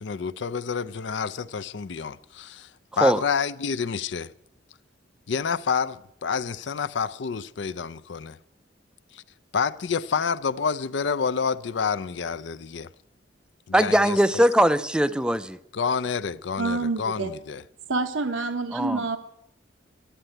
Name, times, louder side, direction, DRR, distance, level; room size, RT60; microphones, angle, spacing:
voice 1, 0.0-2.7 3.0-4.3 5.3-8.4 9.1-9.2 9.5-12.9 13.7-14.4 15.7-17.6, left 6 dB, 65° left, 0.5 m, -28 dB
voice 2, 13.7-15.6 18.7-19.0, right 1 dB, 5° right, 0.4 m, -20 dB
voice 3, 16.6-17.3 17.9-19.2, right 3 dB, 85° right, 0.9 m, -27 dB
11.5 x 8.7 x 9.2 m
head